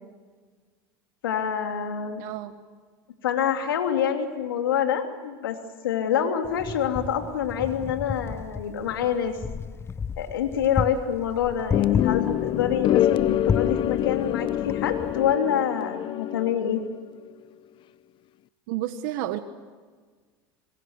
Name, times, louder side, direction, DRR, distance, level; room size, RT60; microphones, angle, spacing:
voice 1, 1.2-2.2 3.2-5.6 5.8-9.4 10.2-16.8, left 8 dB, 90° left, 5 dB, 3.1 m, -26 dB
voice 2, 2.2-2.5 18.7-19.4, right 13 dB, 70° right, 9 dB, 1.4 m, -30 dB
Wind, 6.4-15.3, left 5 dB, 20° left, 0.9 m, -33 dB
sound 1, 11.7-16.8, left 12 dB, 45° left, 0.7 m, -25 dB
26.5 x 22.0 x 8.1 m, 1.5 s
hypercardioid pair, 95°, 11 cm